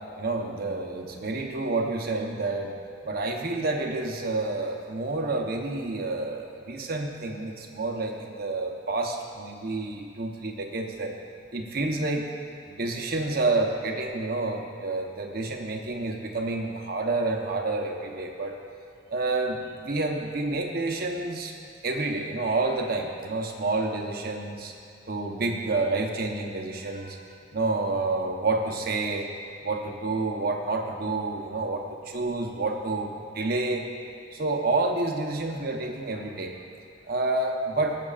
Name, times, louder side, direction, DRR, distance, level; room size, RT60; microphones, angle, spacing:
voice 1, 0.2-2.8 3.0-11.1 11.5-12.3 12.7-18.6 19.1-21.5 21.8-24.7 25.1-27.2 27.5-29.3 29.6-33.9 34.3-36.6 37.1-38.0, right 2 dB, 55° right, 2 dB, 0.9 m, -29 dB
20.0 x 7.5 x 2.5 m, 2.4 s
head